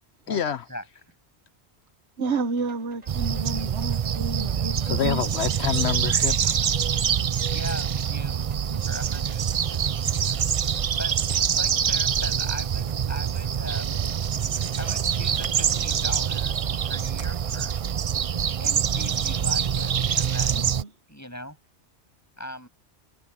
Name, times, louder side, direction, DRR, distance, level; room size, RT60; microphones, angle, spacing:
voice 1, 0.3-0.6 4.8-6.6, left 9 dB, 70° left, 1.0 m, -27 dB
sound 1, 2.2-16.4, right 1 dB, 35° right, 5.8 m, -51 dB
voice 2, 2.2-5.3 7.2-7.3 8.7-9.0 20.5-20.9, right 4 dB, 75° right, 1.3 m, -31 dB
sound 2, 3.1-20.8, right 8 dB, 55° right, 0.4 m, -25 dB
voice 3, 7.5-8.5 8.9-10.4 11.0-14.1 14.8-16.6 16.8-17.8 18.6-20.8 21.1-21.6 22.4-22.7, equal, 15° left, 8.0 m, -40 dB
omnidirectional pair, 1.1 m